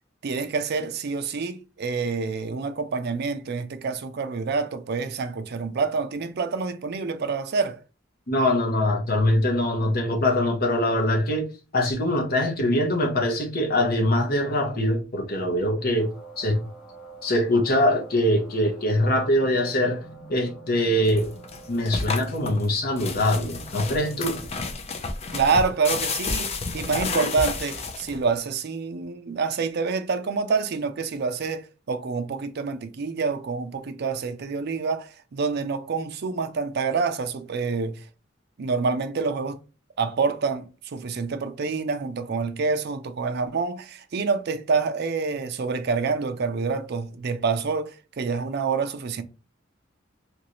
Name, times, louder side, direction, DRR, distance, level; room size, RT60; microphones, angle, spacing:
voice 1, 0.2-7.8 25.3-38.0 38.6-39.6 40.0-49.2, right 4 dB, 55° right, 0.4 m, -27 dB
voice 2, 8.3-11.4 11.7-16.1 16.4-16.6 17.2-21.3 21.7-24.4, left 1 dB, 50° left, 0.8 m, -23 dB
sound 1, 16.0-24.5, right 3 dB, 5° right, 1.0 m, -47 dB
sound 2, 21.1-28.3, left 4 dB, 30° left, 0.5 m, -31 dB
3.0 x 2.6 x 2.9 m
head